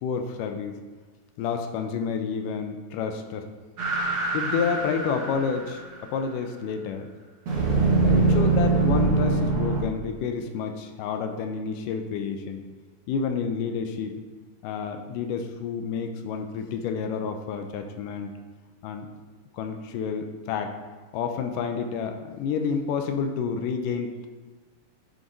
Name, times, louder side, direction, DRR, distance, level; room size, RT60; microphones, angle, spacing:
voice 1, 0.0-0.7 1.4-3.4 4.1-5.8 6.1-7.1 8.0-12.6 13.1-14.2 14.6-18.3 18.8-19.1 19.5-20.8 21.1-24.3, left 6 dB, 80° left, 5 dB, 2.0 m, -29 dB
sound 1, 3.8-5.8 7.5-9.8, right 3 dB, 55° right, 1.8 m, -23 dB
9.4 x 4.8 x 2.7 m, 1.3 s
omnidirectional pair, 3.9 m